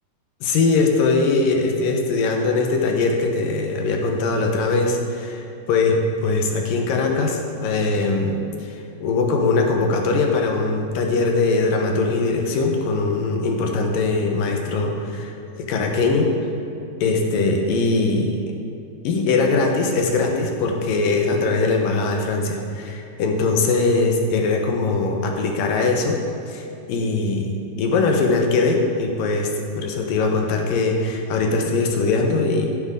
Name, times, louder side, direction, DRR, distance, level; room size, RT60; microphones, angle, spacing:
voice 1, 0.4-8.7 9.0-15.3 15.6-16.3 17.0-18.4 19.0-26.2 26.5-27.5 27.8-32.7, left 3 dB, 70° left, 2 dB, 2.4 m, -21 dB
16.5 x 9.7 x 3.8 m, 2.6 s
omnidirectional pair, 5.0 m